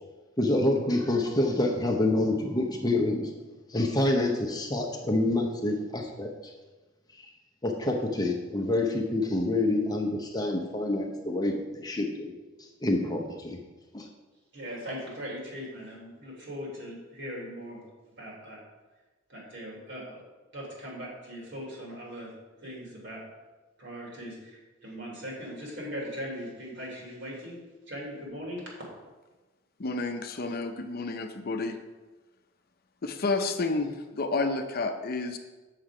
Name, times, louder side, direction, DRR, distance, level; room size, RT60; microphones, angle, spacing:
voice 1, 0.4-3.3 3.7-6.3 7.6-12.3 12.8-13.6 13.9-14.1, left 2 dB, 20° left, 2 dB, 0.8 m, -27 dB
voice 2, 14.5-17.8 18.2-18.6 19.3-20.2 20.5-22.3 22.6-23.2 23.8-27.6 27.9-28.7, equal, 60° right, -3 dB, 3.2 m, -39 dB
voice 3, 29.8-31.8 33.0-35.4, left 3 dB, 50° left, 6 dB, 0.7 m, -30 dB
7.7 x 6.5 x 4.9 m, 1.2 s
head